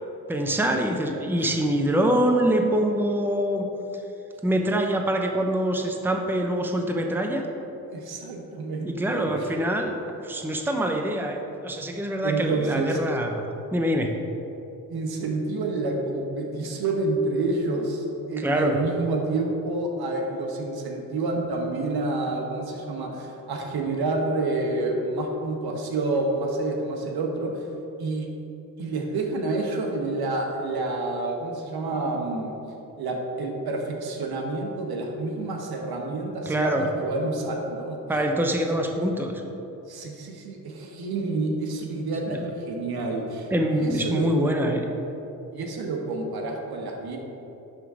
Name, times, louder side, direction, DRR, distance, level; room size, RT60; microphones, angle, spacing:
voice 1, 0.3-3.7 4.4-7.4 8.8-10.0 10.2-13.4 13.7-14.1 18.4-18.8 36.5-36.9 38.1-39.4 42.3-42.4 43.5-44.8, right 1 dB, 5° right, 3 dB, 0.8 m, -24 dB
voice 2, 7.9-9.5 12.2-13.0 14.9-27.5 28.0-28.3 28.8-32.6 33.0-38.0 39.9-44.3 45.5-47.2, right 2 dB, 70° right, 1 dB, 1.3 m, -28 dB
11.0 x 3.8 x 4.9 m, 3.0 s
cardioid pair, 65°, 39 cm